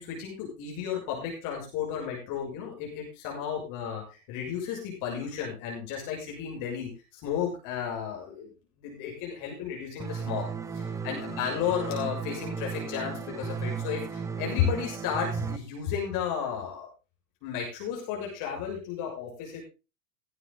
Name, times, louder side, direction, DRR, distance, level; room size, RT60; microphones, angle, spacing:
voice 1, 0.0-8.5 8.8-10.5 10.7-16.9 17.4-19.6, left 8 dB, 50° left, -1 dB, 6.8 m, -33 dB
sound 1, 10.0-15.6, right 5 dB, 5° right, 0.8 m, -35 dB
18.0 x 9.7 x 3.8 m, 0.31 s
hypercardioid pair, 100°, 43 cm